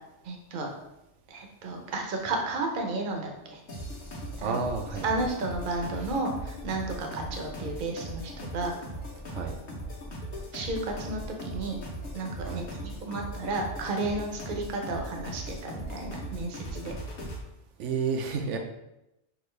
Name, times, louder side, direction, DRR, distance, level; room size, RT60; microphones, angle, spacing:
voice 1, 0.2-0.7 1.3-3.6 4.4-4.6 5.0-8.8 10.5-11.8 12.1-16.9, right 2 dB, 50° right, 2 dB, 0.8 m, -33 dB
sound 1, 3.7-17.4, equal, 55° left, 1.2 m, -39 dB
voice 2, 4.4-5.1 9.3-9.6 12.4-12.7 17.8-18.6, right 5 dB, 80° right, 3 dB, 0.9 m, -30 dB
6.0 x 2.5 x 3.2 m, 0.91 s
omnidirectional pair, 1.2 m